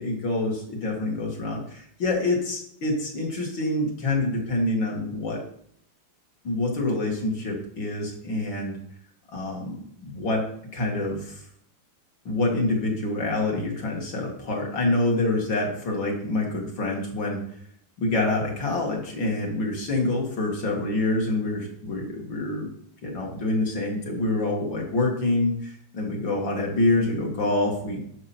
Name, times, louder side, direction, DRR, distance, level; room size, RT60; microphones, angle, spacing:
voice 1, 0.0-5.4 6.4-8.8 9.3-10.4 10.7-11.4 12.2-17.4 18.0-22.7 23.0-28.1, left 2 dB, 75° left, -1 dB, 2.9 m, -26 dB
11.0 x 5.7 x 4.4 m, 0.69 s
omnidirectional pair, 2.0 m